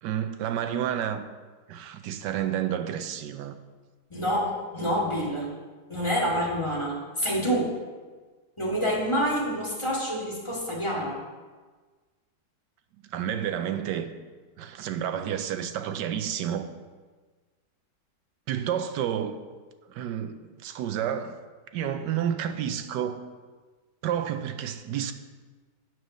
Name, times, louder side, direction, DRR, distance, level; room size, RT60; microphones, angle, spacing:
voice 1, 0.0-1.3 1.7-3.6 13.1-14.1 14.6-16.7 18.5-19.3 19.9-21.4 21.7-23.2 24.0-25.1, right 9 dB, 80° right, 1.3 m, -30 dB
voice 2, 4.1-5.5 5.9-7.7 8.6-11.2, equal, 15° left, 2.0 m, -27 dB
7.8 x 6.8 x 6.2 m
omnidirectional pair, 1.9 m